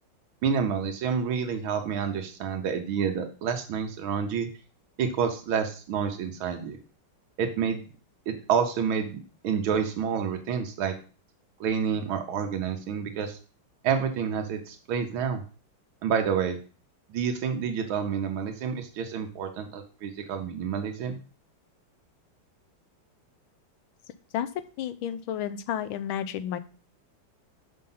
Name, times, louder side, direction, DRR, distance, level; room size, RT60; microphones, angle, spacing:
voice 1, 0.4-4.5 5.0-6.8 7.4-7.8 8.3-10.9 11.6-13.4 13.8-15.4 16.0-16.6 17.1-21.2, right 7 dB, 85° right, 4 dB, 1.7 m, -28 dB
voice 2, 24.8-26.6, left 10 dB, 90° left, 11 dB, 1.5 m, -31 dB
6.4 x 5.4 x 5.5 m, 0.37 s
omnidirectional pair, 2.2 m